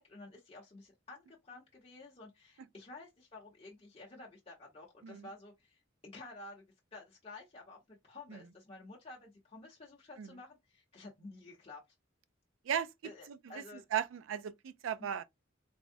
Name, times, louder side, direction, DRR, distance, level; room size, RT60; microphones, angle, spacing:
voice 1, 0.0-6.6 6.9-11.8 13.0-13.9 15.0-15.1, left 2 dB, 30° left, 0.7 m, -52 dB
voice 2, 13.9-15.2, right 8 dB, 80° right, 0.3 m, -36 dB
3.4 x 2.0 x 2.5 m
head